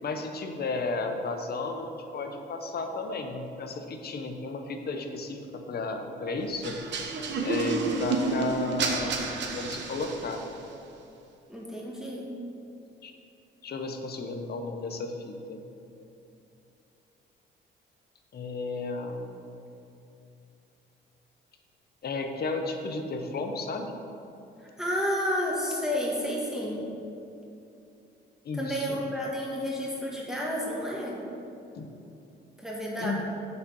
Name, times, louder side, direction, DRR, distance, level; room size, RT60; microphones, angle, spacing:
voice 1, 0.0-6.8 7.4-9.3 9.5-10.4 13.0-13.1 13.6-15.6 18.3-19.4 22.0-23.9 28.4-29.0 31.7-31.9 33.0-33.2, left 3 dB, 55° left, 5 dB, 1.0 m, -33 dB
sound 1, 6.6-10.6, right 3 dB, 65° right, 1.1 m, -30 dB
voice 2, 11.5-12.3 24.6-26.9 28.5-31.2 32.6-33.2, equal, ahead, -5 dB, 1.6 m, -31 dB
7.3 x 6.5 x 5.6 m, 2.8 s
cardioid pair, 90°, 20 cm